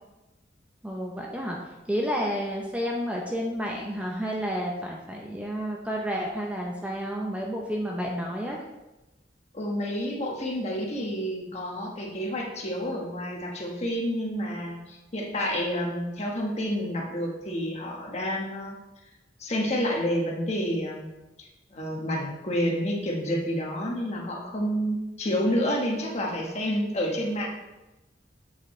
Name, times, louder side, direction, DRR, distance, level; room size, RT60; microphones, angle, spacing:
voice 1, 0.8-1.6 1.9-8.6, equal, 5° right, -1 dB, 0.7 m, -30 dB
voice 2, 9.5-18.8 19.4-21.1 21.4-27.5, equal, 35° left, -1 dB, 1.4 m, -29 dB
7.7 x 7.1 x 3.2 m, 1.0 s
head